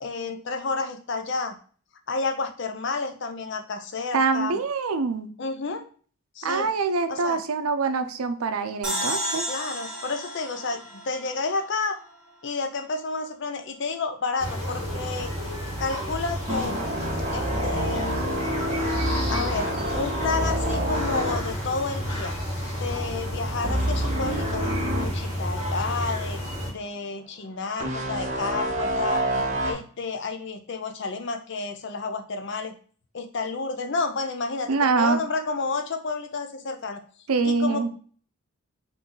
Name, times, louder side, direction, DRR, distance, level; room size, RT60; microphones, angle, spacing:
voice 1, 0.0-1.6 2.1-4.6 5.4-5.9 6.4-6.7 7.1-7.4 9.5-12.0 12.4-15.3 15.8-16.9 17.3-18.1 19.3-22.3 22.8-24.7 25.0-26.4 26.7-29.3 29.6-32.8 33.1-37.0 37.4-37.9, left 4 dB, 55° left, 7 dB, 0.6 m, -30 dB
voice 2, 4.1-5.3 6.4-9.5 34.7-35.2 37.3-37.9, right 4 dB, 85° right, 9 dB, 0.6 m, -24 dB
sound 1, 8.8-12.1, equal, 5° right, 1.6 m, -32 dB
sound 2, 14.4-26.7, equal, 85° left, 2.1 m, -31 dB
sound 3, 16.5-22.6 22.8-23.1 23.6-25.1 25.6-25.7 27.8-29.7, equal, 35° right, 1.1 m, -27 dB
3.8 x 3.2 x 3.8 m, 0.43 s
head